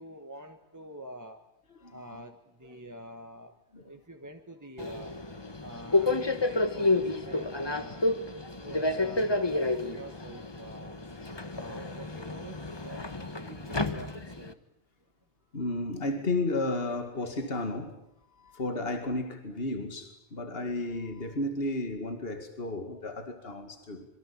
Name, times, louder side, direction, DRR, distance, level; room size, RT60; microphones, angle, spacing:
voice 1, 0.0-1.4 1.9-3.5 3.8-5.1 5.6-8.0 8.6-11.0 11.5-14.6, equal, 15° right, 1.6 m, -46 dB
voice 2, 1.7-2.2 3.7-3.9 8.7-8.8 12.9-13.9 15.5-18.0 18.3-24.1, left 2 dB, 60° left, 2.6 m, -34 dB
Subway metro underground, 4.8-14.5, left 2 dB, 25° left, 1.4 m, -30 dB
26.5 x 23.5 x 8.8 m
omnidirectional pair, 1.1 m